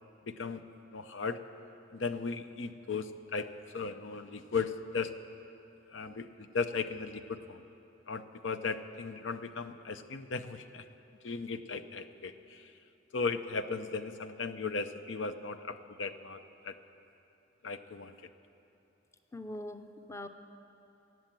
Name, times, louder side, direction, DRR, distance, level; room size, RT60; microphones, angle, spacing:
voice 1, 0.3-0.6 0.9-1.4 1.9-5.1 5.9-7.6 8.1-10.8 11.2-12.7 13.1-16.8 17.6-18.1, left 4 dB, 85° left, 10 dB, 0.6 m, -37 dB
voice 2, 19.3-20.3, left 1 dB, 15° left, 8 dB, 0.5 m, -42 dB
17.0 x 7.7 x 9.0 m, 2.9 s
head